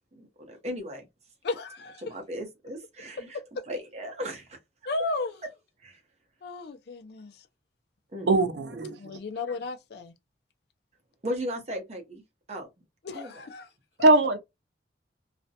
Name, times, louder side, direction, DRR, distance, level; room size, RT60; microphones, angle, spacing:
voice 1, 0.1-1.1 2.0-3.3 3.7-4.6 5.8-6.0 8.1-8.9 11.2-12.2 12.5-12.7 13.1-13.3, equal, 40° right, 0.8 m, -36 dB
voice 2, 1.4-2.0 4.9-5.4 6.4-7.5 9.0-10.1 13.0-13.7 14.0-14.1, left 3 dB, 65° left, 0.5 m, -34 dB
voice 3, 8.3-9.0 14.0-14.4, right 2 dB, 70° right, 0.4 m, -20 dB
2.4 x 2.1 x 2.7 m
head